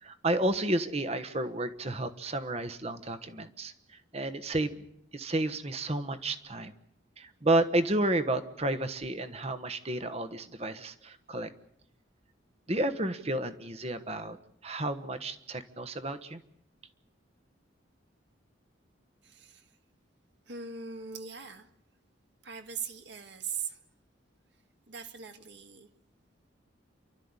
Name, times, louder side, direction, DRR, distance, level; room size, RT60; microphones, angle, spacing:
voice 1, 0.0-3.7 4.1-4.7 5.1-6.7 7.2-11.5 12.7-14.4 14.6-16.4, right 1 dB, 30° right, 1.2 m, -31 dB
voice 2, 19.2-19.8 20.5-21.7 22.4-23.8 24.9-25.9, right 6 dB, 60° right, 1.8 m, -40 dB
29.0 x 12.5 x 9.7 m
head